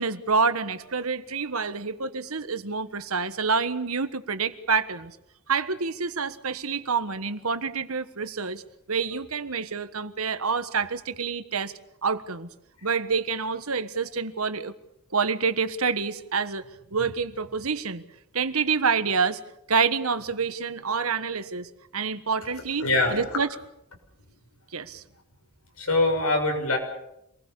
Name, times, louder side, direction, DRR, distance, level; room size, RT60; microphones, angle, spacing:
voice 1, 0.0-5.2 5.5-8.6 8.9-11.7 12.0-12.5 12.8-14.7 15.1-18.0 18.3-19.4 19.7-23.5 24.7-25.0, right 5 dB, 85° right, 11 dB, 1.5 m, -27 dB
voice 2, 22.8-23.2 25.8-26.8, left 2 dB, 90° left, 3 dB, 6.7 m, -23 dB
27.0 x 20.0 x 6.9 m, 0.80 s
head